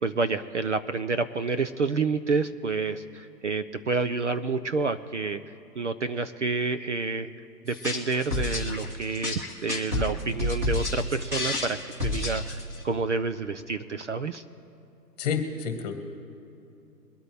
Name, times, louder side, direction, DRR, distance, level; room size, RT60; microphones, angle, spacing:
voice 1, 0.0-5.4 5.8-7.3 7.6-12.6 12.8-14.4, right 4 dB, 45° right, 10 dB, 0.6 m, -29 dB
sound 1, 7.7-12.8, left 2 dB, 5° right, 1.4 m, -30 dB
voice 2, 15.2-15.9, left 6 dB, 25° left, 5 dB, 2.0 m, -29 dB
23.5 x 8.8 x 3.5 m, 2.6 s
hypercardioid pair, 160°, 50 cm